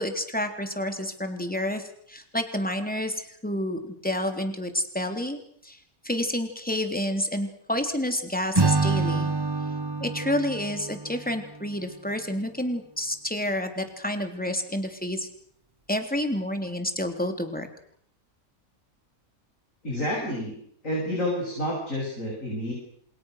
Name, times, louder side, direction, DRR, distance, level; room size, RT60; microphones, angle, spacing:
voice 1, 0.0-5.8 6.0-9.3 10.0-15.3 15.9-17.7, left 1 dB, 5° left, 6 dB, 3.5 m, -29 dB
Acoustic guitar / Strum, 8.5-11.8, right 3 dB, 15° right, 1.2 m, -27 dB
voice 2, 19.8-20.6 20.8-22.7, left 1 dB, 60° left, -2 dB, 8.3 m, -29 dB
28.5 x 28.0 x 6.6 m, 0.67 s
omnidirectional pair, 1.5 m